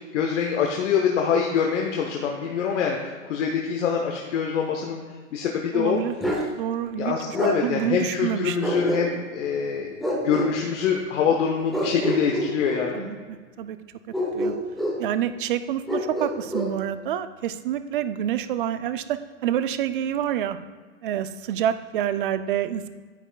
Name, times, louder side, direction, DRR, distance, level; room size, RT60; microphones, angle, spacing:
voice 1, 0.1-5.0 5.3-6.0 7.0-9.9 10.2-13.1, left 7 dB, 65° left, 1 dB, 1.0 m, -25 dB
voice 2, 5.7-6.1 6.6-7.2 7.6-8.6 12.9-13.8 14.3-14.5 15.0-20.6 21.0-22.9, right 10 dB, 45° right, 12 dB, 0.4 m, -27 dB
Bark, 6.2-6.5 7.3-7.6 8.6-9.3 10.0-10.5 11.7-12.9 14.1-15.0 15.9-16.7, equal, ahead, 0.6 m, -27 dB
9.8 x 8.7 x 2.4 m, 1.5 s
hypercardioid pair, 155°, 40 cm